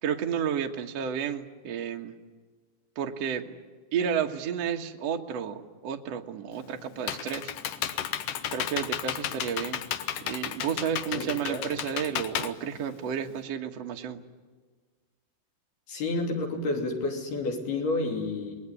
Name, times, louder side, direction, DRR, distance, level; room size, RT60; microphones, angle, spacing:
voice 1, 0.0-2.1 2.9-3.6 3.9-7.5 8.5-9.8 10.2-14.2, right 8 dB, 75° right, 3 dB, 1.5 m, -31 dB
Computer keyboard, 6.5-13.4, left 10 dB, 85° left, 1.9 m, -33 dB
voice 2, 11.1-11.7 15.9-18.6, left 2 dB, 60° left, 1 dB, 4.8 m, -30 dB
28.0 x 20.5 x 9.9 m, 1.5 s
omnidirectional pair, 5.3 m